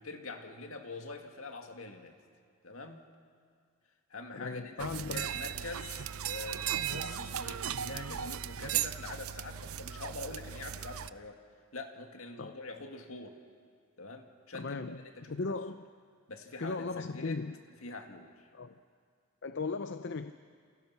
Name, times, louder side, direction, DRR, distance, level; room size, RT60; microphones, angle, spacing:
voice 1, 0.0-2.2 2.6-3.0 4.1-11.4 11.7-13.4 14.0-15.6 16.3-17.4 17.8-18.5, left 3 dB, 70° left, 2.2 m, -45 dB
voice 2, 4.3-5.3 12.4-12.6 14.5-15.0 15.3-15.9 16.6-17.6 18.5-18.8 19.4-20.3, left 3 dB, 55° left, 0.6 m, -37 dB
sound 1, 4.8-11.1, right 9 dB, 80° right, 0.7 m, -37 dB
29.0 x 28.5 x 5.9 m
head